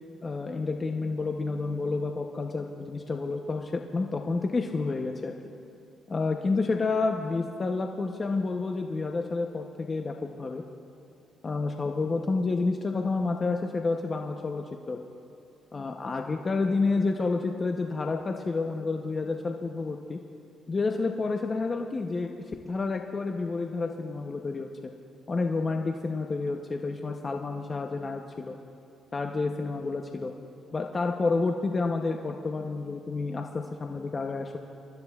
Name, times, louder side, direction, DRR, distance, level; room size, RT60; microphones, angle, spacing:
voice 1, 0.2-5.3 6.1-10.6 11.4-15.0 15.7-20.2 20.7-24.7 25.3-28.6 29.1-30.3 30.7-34.6, left 3 dB, 35° left, 3 dB, 0.7 m, -29 dB
26.5 x 13.0 x 2.4 m, 2.6 s
cardioid pair, 90°, 0 cm